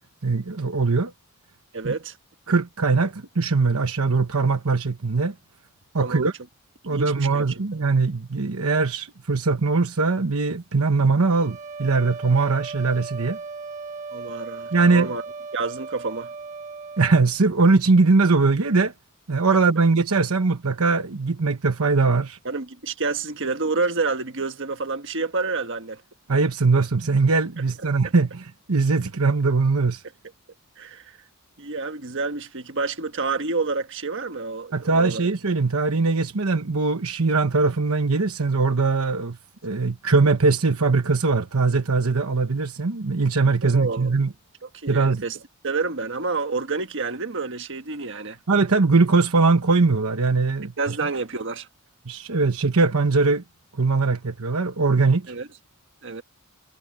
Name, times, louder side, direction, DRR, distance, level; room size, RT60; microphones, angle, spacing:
voice 1, 0.2-1.1 1.8-1.9 2.5-5.3 5.9-6.3 6.9-13.4 14.7-15.1 17.0-18.9 19.3-22.4 26.3-30.0 34.7-39.4 39.6-44.3 44.9-45.2 48.5-50.7 52.1-53.4 53.7-55.3, right 3 dB, 75° right, 1.1 m, -21 dB
voice 2, 1.7-2.2 6.0-6.3 6.8-7.8 14.1-15.2 15.5-16.3 22.4-26.0 30.8-31.2 31.6-35.2 43.6-44.1 44.6-45.4 45.6-48.4 50.8-51.7 55.3-55.5 56.0-56.2, right 4 dB, 55° right, 1.5 m, -29 dB
sound 1, 11.3-17.3, right 4 dB, 35° right, 1.5 m, -37 dB
head